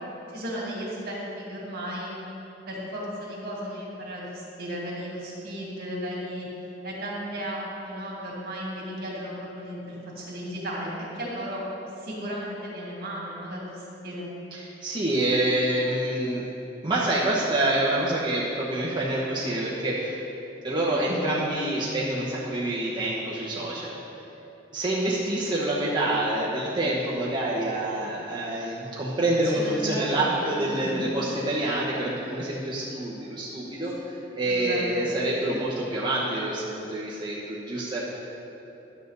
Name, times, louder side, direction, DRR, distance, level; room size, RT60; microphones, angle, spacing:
voice 1, 0.3-2.1 2.7-6.5 6.8-11.6 12.0-14.3 29.5-30.0 30.3-31.1 33.8-33.9 34.5-35.0, equal, 55° right, -5 dB, 2.4 m, -35 dB
voice 2, 14.5-16.4 16.8-20.2 20.6-23.9 24.7-38.0, right 1 dB, 25° right, -7 dB, 1.0 m, -27 dB
11.0 x 7.5 x 4.0 m, 3.0 s
head